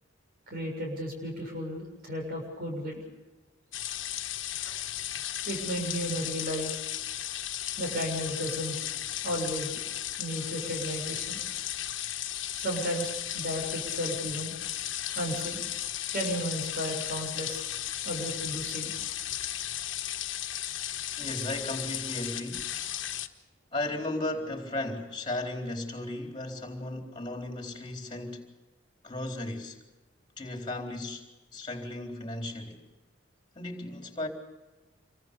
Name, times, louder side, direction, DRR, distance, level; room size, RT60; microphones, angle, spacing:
voice 1, 0.5-3.0 4.6-4.7 5.4-6.8 7.8-8.9 9.2-9.8 10.2-11.4 12.6-14.5 15.2-15.6 16.1-17.7 18.0-18.9, equal, 50° right, 7.2 m, -34 dB
sound 1, 3.7-23.3, left 12 dB, 70° left, 1.4 m, -35 dB
voice 2, 21.2-22.7 23.7-28.5 29.0-29.8 30.4-32.9 33.5-34.3, left 1 dB, 25° left, 4.0 m, -35 dB
28.0 x 23.5 x 5.4 m
head